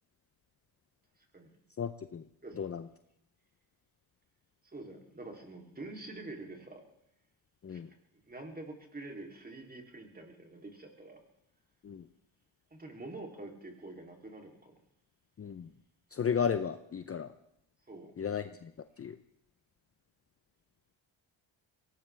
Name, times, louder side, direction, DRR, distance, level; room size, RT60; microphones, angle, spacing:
voice 1, 1.8-2.2 2.6-2.9 7.6-7.9 11.8-12.1 15.4-15.7 16.1-17.3 18.2-18.7 19.0-19.2, left 7 dB, 30° left, 10 dB, 0.7 m, -34 dB
voice 2, 4.7-6.8 7.7-7.8 8.3-11.2 12.7-14.7 17.9-18.1, right 2 dB, 20° right, 2 dB, 3.2 m, -46 dB
23.0 x 18.0 x 3.4 m, 0.77 s
cardioid pair, 110°, 46 cm